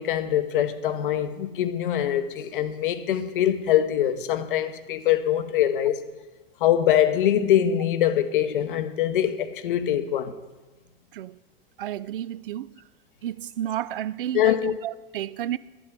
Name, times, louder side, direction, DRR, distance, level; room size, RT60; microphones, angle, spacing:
voice 1, 0.0-6.0 6.6-10.3 14.3-14.7, left 11 dB, 60° left, 1.0 m, -23 dB
voice 2, 11.8-12.7 13.2-15.6, right 11 dB, 65° right, 0.5 m, -31 dB
12.0 x 6.2 x 9.5 m
figure-of-eight pair, 85°, 29 cm